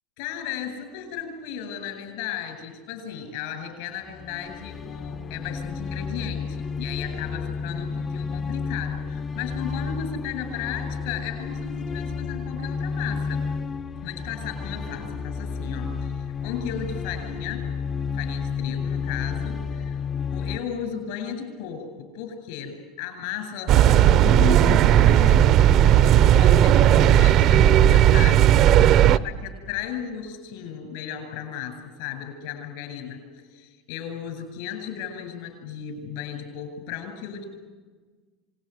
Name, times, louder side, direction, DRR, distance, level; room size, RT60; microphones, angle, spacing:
voice 1, 0.2-13.4 14.0-17.7 18.1-20.0 20.3-28.5 28.9-37.4, left 8 dB, 75° left, 6 dB, 8.0 m, -35 dB
sound 1, 4.1-20.6, left 5 dB, 25° left, 0.7 m, -31 dB
sound 2, 23.7-29.2, right 11 dB, 45° right, 0.8 m, -15 dB
27.0 x 20.0 x 9.9 m, 1.4 s
supercardioid pair, 140°, 0 cm